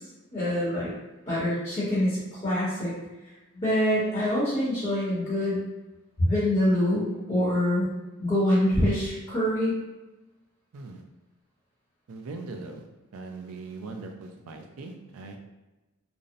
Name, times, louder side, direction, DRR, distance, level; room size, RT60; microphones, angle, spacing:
voice 1, 0.3-0.9 1.3-2.9 3.5-5.6 6.2-7.9 8.2-9.8, left 1 dB, 25° left, -10 dB, 0.9 m, -25 dB
voice 2, 10.7-11.0 12.1-12.9 13.1-15.4, right 3 dB, 70° right, 4 dB, 0.4 m, -40 dB
2.6 x 2.0 x 2.6 m, 1.1 s
head